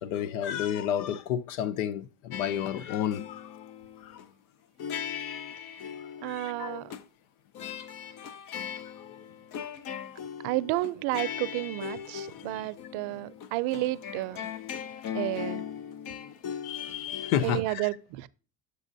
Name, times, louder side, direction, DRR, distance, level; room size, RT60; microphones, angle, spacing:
voice 1, 0.0-3.7 4.0-4.3 6.2-6.8 9.0-9.3 9.6-9.8 12.5-12.7 16.6-17.9, left 10 dB, 90° left, 0.7 m, -32 dB
sound 1, 2.3-4.3 4.8-7.0 7.5-17.6, left 8 dB, 55° left, 0.8 m, -39 dB
voice 2, 6.2-6.9 10.4-14.5 15.1-15.6 17.4-18.3, right 18 dB, 70° right, 0.6 m, -31 dB
8.2 x 6.5 x 2.6 m
supercardioid pair, 110°, 40 cm